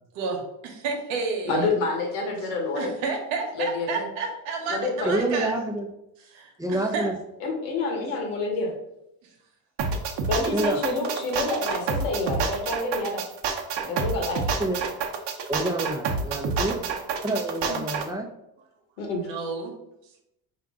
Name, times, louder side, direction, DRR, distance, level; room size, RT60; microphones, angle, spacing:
voice 1, 0.1-1.7 2.7-5.5 6.3-7.1 19.2-19.7, right 4 dB, 85° right, 3 dB, 1.0 m, -31 dB
voice 2, 1.4-3.0 3.5-4.0 4.7-5.2 7.4-8.7 10.3-13.2 13.5-14.4 16.8-16.9 17.6-17.8 19.0-19.3, left 3 dB, 80° left, 1 dB, 1.3 m, -28 dB
voice 3, 5.0-5.9 6.6-7.1 10.5-10.8 14.6-14.8 15.5-16.8 17.2-18.3, right 1 dB, 5° right, 2 dB, 0.6 m, -27 dB
sound 1, 9.8-18.1, right 5 dB, 60° right, 0.8 m, -28 dB
4.5 x 2.5 x 3.6 m, 0.84 s
supercardioid pair, 80°, 49 cm